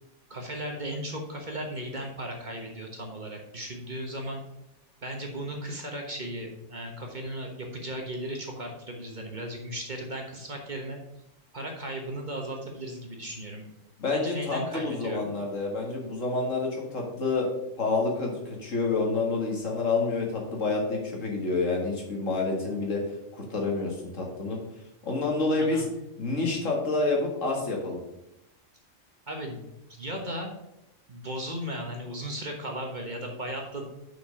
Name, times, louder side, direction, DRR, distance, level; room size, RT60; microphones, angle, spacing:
voice 1, 0.3-4.4 5.0-11.0 11.5-13.7 14.1-15.3 25.6-25.9 29.3-29.6 29.9-30.5 31.1-33.9, right 1 dB, 35° right, 1 dB, 1.4 m, -36 dB
voice 2, 14.0-17.5 17.8-23.0 23.3-24.6 25.0-25.8 26.2-28.0, left 3 dB, 70° left, 0 dB, 2.2 m, -28 dB
6.0 x 5.9 x 6.5 m, 0.87 s
omnidirectional pair, 1.4 m